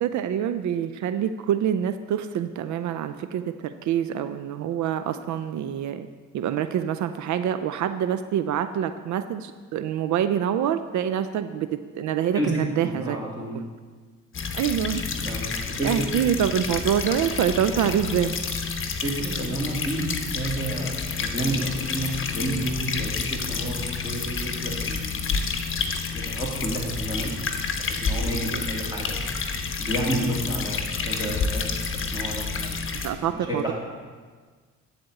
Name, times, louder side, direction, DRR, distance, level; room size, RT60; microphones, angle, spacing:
voice 1, 0.0-6.1 6.3-13.2 13.5-13.6 14.5-15.0 15.5-18.4 28.5-28.6 33.0-33.7, right 9 dB, 70° right, 11 dB, 0.5 m, -26 dB
voice 2, 12.8-13.5 15.2-16.1 19.0-25.5 26.1-27.3 27.9-29.2 29.8-31.6 31.9-32.9 33.1-33.7, right 1 dB, 15° right, -4 dB, 3.0 m, -31 dB
sound 1, 14.3-33.1, left 5 dB, 45° left, 1.0 m, -29 dB
10.5 x 4.3 x 7.7 m, 1.5 s
cardioid pair, 90°, 30 cm